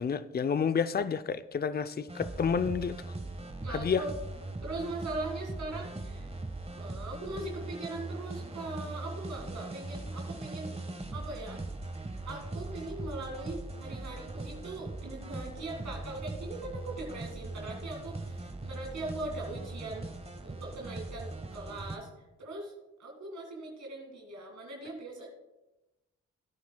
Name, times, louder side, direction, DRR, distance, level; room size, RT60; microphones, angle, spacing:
voice 1, 0.0-3.0 3.7-4.0, left 6 dB, 30° left, 0.5 m, -30 dB
sound 1, 2.1-22.0, right 2 dB, 20° right, 1.4 m, -40 dB
voice 2, 3.6-4.2 4.6-6.3 6.8-10.8 11.1-11.6 12.3-20.1 20.4-22.1 22.4-22.7 23.0-25.3, right 2 dB, 70° right, 2.1 m, -40 dB
16.0 x 9.4 x 2.3 m
supercardioid pair, 50°, 30 cm